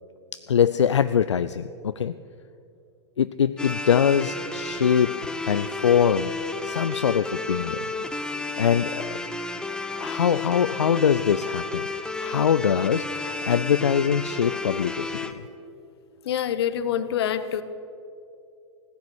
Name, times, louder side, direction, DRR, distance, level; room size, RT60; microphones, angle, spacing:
voice 1, 0.3-2.2 3.2-5.2 5.4-7.8 8.6-9.2 10.0-11.8 12.2-15.1, left 8 dB, 85° left, 13 dB, 0.4 m, -23 dB
sound 1, 3.6-15.3, left 3 dB, 5° left, 0.8 m, -32 dB
voice 2, 16.2-17.6, left 9 dB, 65° left, 13 dB, 1.0 m, -26 dB
16.5 x 9.9 x 8.0 m, 2.6 s
figure-of-eight pair, 100°, 15 cm